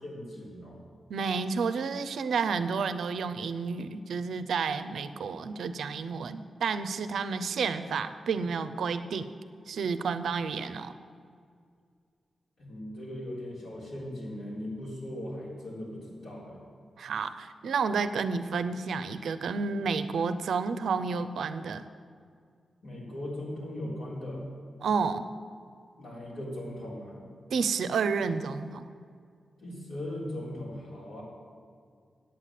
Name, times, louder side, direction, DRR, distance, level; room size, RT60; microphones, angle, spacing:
voice 1, 0.0-0.8 12.6-16.6 22.8-24.4 26.0-27.2 29.6-31.2, left 1 dB, 75° left, -5 dB, 3.5 m, -39 dB
voice 2, 1.1-9.3 9.7-10.9 17.0-21.8 24.8-25.3 27.5-28.8, right 5 dB, 85° right, 11 dB, 0.5 m, -30 dB
8.9 x 8.3 x 7.4 m, 2.2 s
cardioid pair, 80°, 0 cm